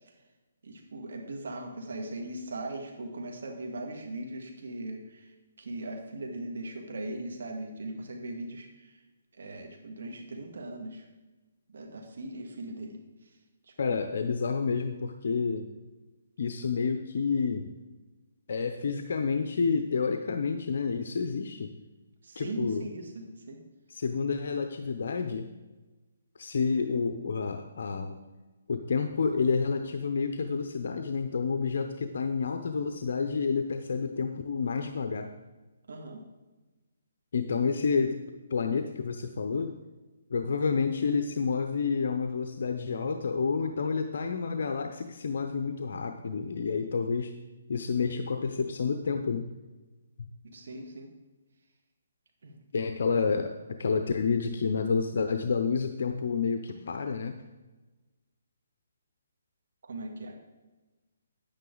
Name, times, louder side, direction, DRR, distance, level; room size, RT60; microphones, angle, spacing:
voice 1, 0.6-5.3 5.6-9.0 9.4-11.1 11.7-13.0 13.7-14.0 22.2-23.6 35.9-36.2 50.4-51.1 52.4-52.5 59.8-60.4, right 1 dB, 70° right, 3 dB, 2.0 m, -39 dB
voice 2, 13.8-15.7 16.4-17.7 18.5-21.7 22.4-22.9 23.9-25.4 26.4-28.2 28.7-35.3 37.3-38.2 38.5-39.7 40.3-47.3 47.7-49.5 52.7-53.5 53.8-57.3, left 5 dB, 65° left, 6 dB, 0.7 m, -29 dB
9.8 x 8.9 x 3.9 m, 1.2 s
hypercardioid pair, 155°, 0 cm